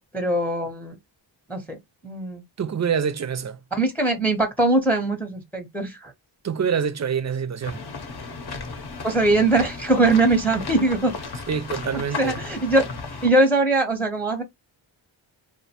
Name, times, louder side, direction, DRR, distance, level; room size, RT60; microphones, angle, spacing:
voice 1, 0.1-1.0 1.5-1.8 2.0-2.4 3.7-6.1 9.0-11.1 12.2-12.9 13.2-14.4, right 2 dB, 5° left, 0.6 m, -21 dB
voice 2, 2.6-3.6 6.4-7.8 11.5-12.4, right 7 dB, 40° right, 0.4 m, -26 dB
sound 1, 7.6-13.3, left 4 dB, 55° left, 0.7 m, -34 dB
2.5 x 2.1 x 2.7 m
wide cardioid pair, 75°, 47 cm